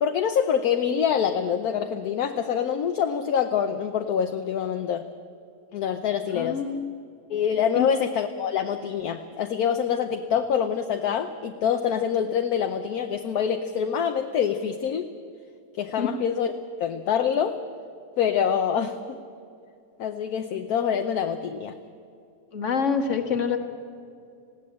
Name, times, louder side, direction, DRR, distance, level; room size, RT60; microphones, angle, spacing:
voice 1, 0.0-5.1 5.7-6.6 7.3-15.1 15.8-16.5 16.8-17.6 18.2-19.2 20.0-21.8, left 8 dB, 70° left, 6 dB, 1.2 m, -25 dB
voice 2, 6.3-7.0 7.8-7.9 16.0-16.2 22.5-23.6, left 6 dB, 50° left, 6 dB, 1.8 m, -26 dB
19.5 x 16.5 x 8.6 m, 2.5 s
omnidirectional pair, 1.7 m